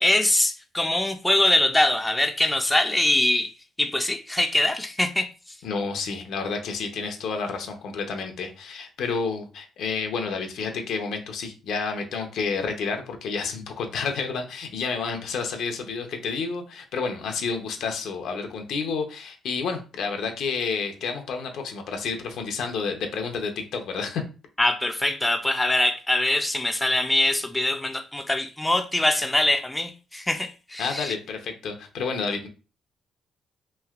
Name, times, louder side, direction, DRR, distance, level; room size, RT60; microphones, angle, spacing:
voice 1, 0.0-3.5 3.8-5.3 24.6-31.1, left 1 dB, 10° left, 0.4 m, -23 dB
voice 2, 5.6-24.2 30.8-32.5, left 5 dB, 75° left, 0.6 m, -30 dB
3.1 x 2.7 x 2.4 m
cardioid pair, 90°, 0 cm